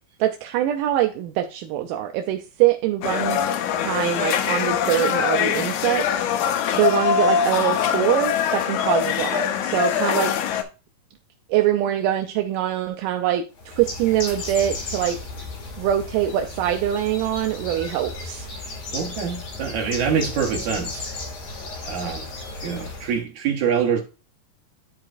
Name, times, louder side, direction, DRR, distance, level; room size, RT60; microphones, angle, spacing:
voice 1, 0.2-3.4 3.8-6.2 6.7-10.3 11.5-15.2 15.8-18.5, right 12 dB, 80° right, 2.0 m, -23 dB
sound 1, 3.0-10.6, left 8 dB, 80° left, 1.7 m, -23 dB
Bird, 13.5-23.2, left 3 dB, 50° left, 3.2 m, -34 dB
voice 2, 18.9-21.1 21.9-22.3 22.6-24.0, right 7 dB, 65° right, 2.2 m, -25 dB
11.0 x 4.7 x 2.5 m
omnidirectional pair, 4.2 m